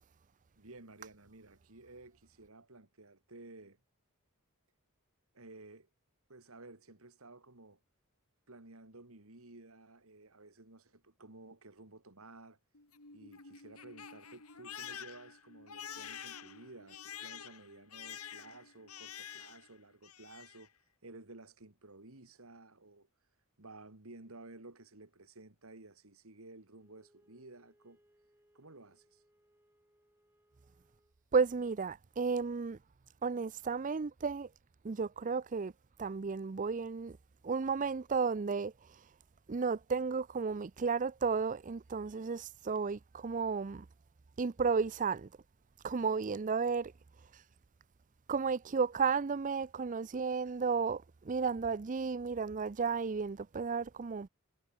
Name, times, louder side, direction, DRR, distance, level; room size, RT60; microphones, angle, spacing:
voice 1, 0.6-3.8 5.3-5.9 6.3-7.8 8.5-12.6 13.1-20.7 21.0-23.1 23.6-28.0 28.5-29.2, right 2 dB, 65° right, 2.4 m, -54 dB
Crying sobbing, 12.7-19.7 20.0-20.7, left 8 dB, 75° left, 3.8 m, -48 dB
Wind instrument woodwind instrument, 26.7-31.2, equal, 10° right, 6.8 m, -71 dB
voice 2, 31.3-32.8 33.2-34.5 34.8-35.7 36.0-37.2 37.4-38.7 39.5-43.9 44.4-45.3 45.8-46.9 48.3-54.3, right 5 dB, 35° right, 0.5 m, -33 dB
head